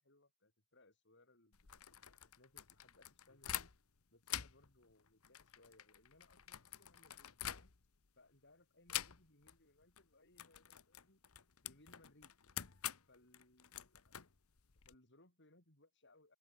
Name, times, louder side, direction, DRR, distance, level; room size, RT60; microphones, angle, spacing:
voice 1, 0.0-1.7 2.2-3.7 4.1-7.7 8.2-11.2 11.6-12.3 13.1-14.2 14.8-16.4, left 2 dB, 55° left, 7.7 m, -68 dB
sound 1, 1.5-4.0 4.2-8.1 8.9-9.6 9.8-10.0 10.3-14.9, left 12 dB, 75° left, 1.2 m, -47 dB
open air
head